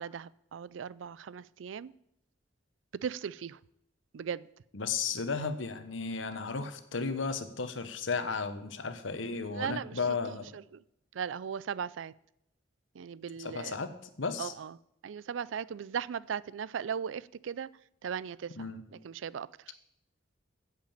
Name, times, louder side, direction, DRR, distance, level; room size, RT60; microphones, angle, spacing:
voice 1, 0.0-1.9 2.9-3.6 4.1-4.5 9.5-10.0 10.3-10.8 11.1-12.1 12.9-13.8 14.4-14.8 15.0-17.7 18.0-18.6 18.9-19.7, right 7 dB, 80° right, 20 dB, 0.4 m, -38 dB
voice 2, 4.7-10.5 13.4-13.9 14.2-14.5 18.6-18.9, left 4 dB, 90° left, 10 dB, 1.1 m, -34 dB
9.0 x 7.6 x 8.6 m, 0.80 s
head